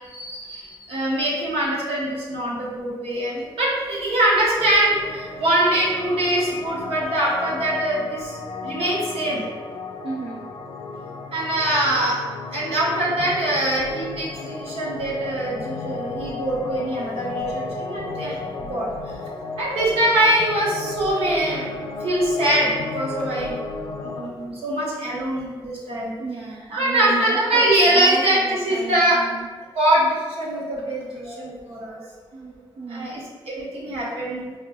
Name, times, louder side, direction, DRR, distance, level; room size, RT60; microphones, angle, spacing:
voice 1, 0.0-8.4 8.6-9.5 11.3-12.2 12.5-18.4 18.7-19.2 19.6-23.6 24.0-26.1 26.7-29.2 29.7-32.1 32.9-34.5, right 1 dB, 85° right, -6 dB, 1.1 m, -23 dB
sound 1, 4.6-24.2, left 3 dB, 65° left, 0.5 m, -33 dB
voice 2, 10.0-10.4 26.2-27.7 27.9-29.5 32.3-33.1, right 3 dB, 70° right, -5 dB, 0.6 m, -33 dB
5.6 x 2.4 x 2.3 m, 1.5 s
cardioid pair, 80°, 10 cm